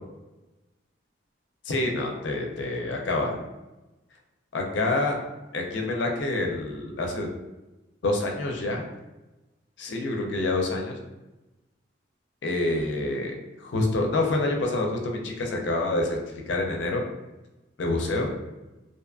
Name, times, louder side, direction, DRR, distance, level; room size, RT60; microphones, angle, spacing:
voice 1, 1.7-3.4 4.5-5.2 5.5-7.3 8.0-8.9 9.8-11.0 12.4-16.2 16.5-17.0 17.8-18.3, left 2 dB, 70° left, 1 dB, 0.4 m, -27 dB
2.6 x 2.4 x 2.3 m, 1.1 s
head